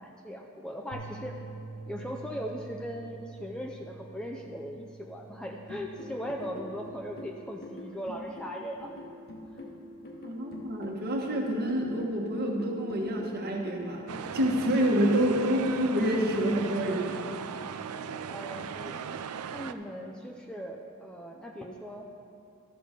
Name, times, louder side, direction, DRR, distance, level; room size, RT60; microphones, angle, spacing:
voice 1, 0.0-1.4 1.9-8.9 17.9-19.0 19.5-22.1, equal, 5° left, 0 dB, 0.5 m, -39 dB
sound 1, 0.9-7.2, right 3 dB, 70° left, 0.7 m, -47 dB
sound 2, 5.7-15.6, left 1 dB, 45° left, 1.1 m, -44 dB
voice 2, 10.2-14.0 14.3-17.2, equal, 45° right, 0 dB, 1.3 m, -27 dB
sound 3, 14.1-19.7, right 7 dB, 70° right, 0.4 m, -38 dB
13.0 x 6.9 x 5.0 m, 2.6 s
head